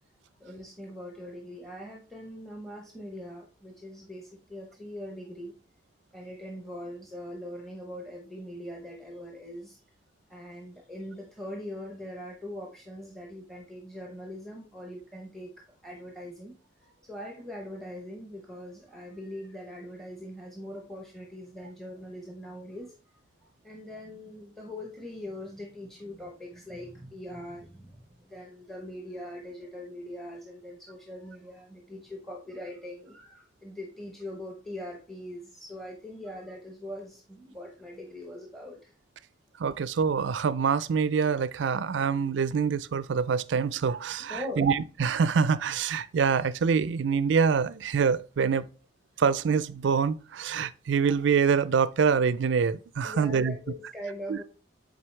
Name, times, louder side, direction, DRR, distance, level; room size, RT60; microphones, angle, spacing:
voice 1, 0.4-5.5 6.1-9.8 10.3-15.5 15.8-16.5 16.8-22.9 23.6-38.9 44.3-44.7 53.0-54.4, left 1 dB, ahead, 0.8 m, -41 dB
voice 2, 39.6-48.7 49.2-53.5 54.3-54.4, right 6 dB, 70° right, 0.4 m, -25 dB
7.5 x 4.1 x 3.2 m
head